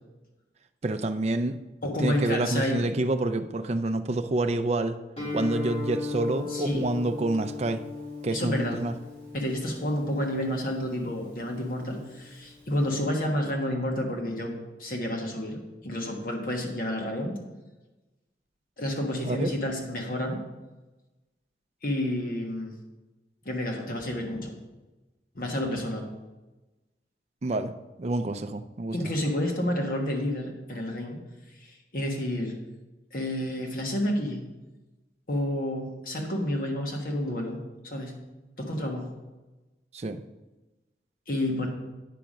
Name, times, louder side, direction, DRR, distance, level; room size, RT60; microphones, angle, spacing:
voice 1, 0.8-1.6 2.0-5.0 5.3-7.8 8.2-8.9 19.2-19.5 27.4-27.7 28.0-29.0 39.9-40.2, right 2 dB, 40° right, 8 dB, 0.4 m, -28 dB
voice 2, 1.8-2.9 6.5-6.8 8.3-8.8 9.3-17.4 18.8-20.4 21.8-22.7 23.4-24.5 25.3-26.1 28.9-31.2 31.6-32.5 33.1-34.4 35.3-38.1 38.6-39.1 41.3-41.7, left 1 dB, 50° left, 1 dB, 1.4 m, -30 dB
Guitar, 5.2-12.9, left 4 dB, 35° left, 3.4 m, -38 dB
9.2 x 5.9 x 5.1 m, 1.1 s
head